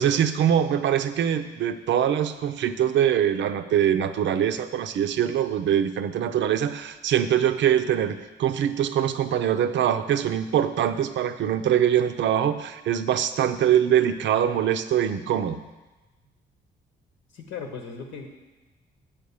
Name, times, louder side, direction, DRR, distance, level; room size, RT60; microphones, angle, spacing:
voice 1, 0.0-15.6, right 9 dB, 65° right, 10 dB, 0.6 m, -23 dB
voice 2, 17.3-18.3, left 5 dB, 90° left, 2 dB, 1.1 m, -37 dB
7.1 x 5.1 x 7.1 m, 1.1 s
cardioid pair, 90°, 20 cm